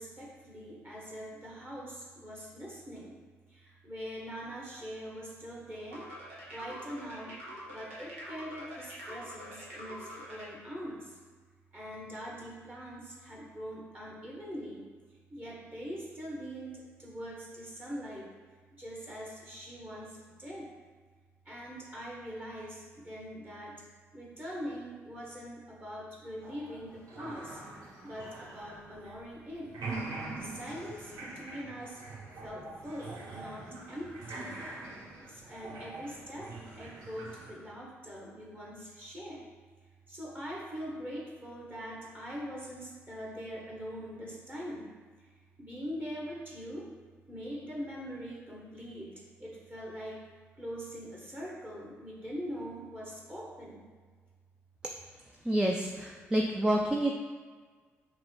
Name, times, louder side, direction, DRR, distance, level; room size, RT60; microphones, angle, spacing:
voice 1, 0.0-3.2 3.5-6.1 6.5-7.4 7.7-11.0 11.7-14.8 15.3-18.3 18.8-20.7 21.5-23.7 24.1-27.6 28.0-29.7 30.3-32.0 32.4-34.5 35.2-36.5 36.8-39.4 40.1-44.9 45.6-46.9 47.3-49.1 49.4-50.2 50.6-53.8, equal, 25° right, -3 dB, 1.1 m, -42 dB
sound 1, 5.9-10.5, equal, 85° right, 0.7 m, -45 dB
sound 2, 26.4-29.4 29.6-37.5, right 2 dB, 60° right, 1.0 m, -44 dB
voice 2, 55.4-57.1, right 1 dB, 10° right, 0 dB, 0.4 m, -28 dB
5.8 x 2.1 x 3.2 m, 1.5 s
hypercardioid pair, 40°, 7 cm